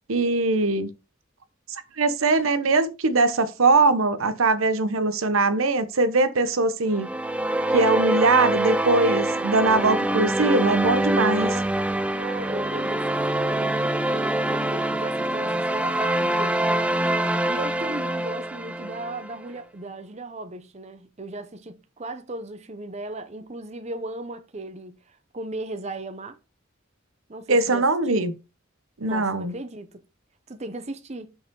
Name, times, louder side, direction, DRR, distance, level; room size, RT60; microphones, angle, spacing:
voice 1, 0.1-0.9 2.0-7.1 7.7-11.5 27.5-28.3 29.0-29.5, right 3 dB, 80° right, 0.9 m, -21 dB
sound 1, 6.9-19.3, right 1 dB, 5° right, 0.3 m, -25 dB
voice 2, 11.1-11.7 12.1-26.4 27.3-28.1 29.1-30.0 30.5-31.3, right 2 dB, 30° right, 0.8 m, -37 dB
5.7 x 5.3 x 4.6 m
head